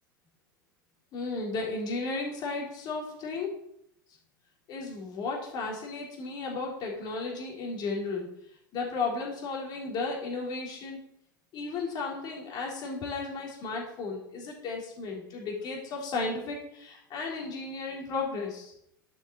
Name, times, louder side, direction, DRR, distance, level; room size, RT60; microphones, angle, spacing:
voice 1, 1.1-3.6 4.7-8.3 8.7-11.0 11.5-18.7, left 3 dB, 40° left, -1 dB, 3.7 m, -34 dB
11.5 x 7.3 x 4.1 m, 0.74 s
figure-of-eight pair, 85°, 11 cm